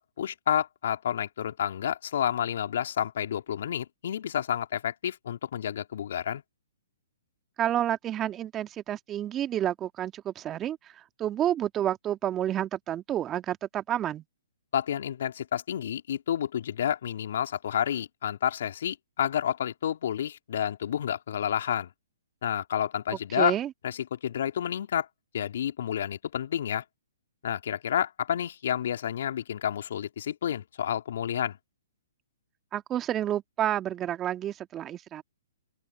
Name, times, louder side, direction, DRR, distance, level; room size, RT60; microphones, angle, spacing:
voice 1, 0.0-6.4 14.7-21.9 22.4-23.6 23.8-25.1 25.3-26.8 27.4-31.6, left 9 dB, 60° left, 2.9 m, -30 dB
voice 2, 7.6-10.8 11.2-14.2 23.3-23.7 32.7-35.2, right 11 dB, 20° right, 1.7 m, -29 dB
open air
hypercardioid pair, 130°, 0 cm